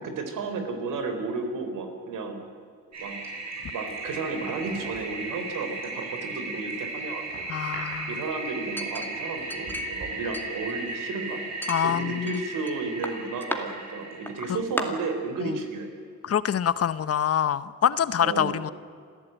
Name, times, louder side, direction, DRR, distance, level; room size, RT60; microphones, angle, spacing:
voice 1, 0.0-2.4 3.0-3.2 3.7-7.2 8.1-11.4 11.8-15.9 18.2-18.5, right 3 dB, 75° right, 6 dB, 4.0 m, -33 dB
Toilet flush, 2.9-14.5, right 3 dB, 55° right, 7.7 m, -36 dB
voice 2, 7.5-8.2 11.7-12.4 15.4-15.5 16.2-18.7, left 9 dB, 50° left, 15 dB, 0.9 m, -25 dB
Chink clink, 8.8-10.0 10.3-11.1 11.6-12.7 13.0-13.6 14.3-14.4 14.8-14.9, left 1 dB, 5° left, 2.3 m, -34 dB
27.0 x 15.0 x 9.2 m, 2.2 s
cardioid pair, 95°, 32 cm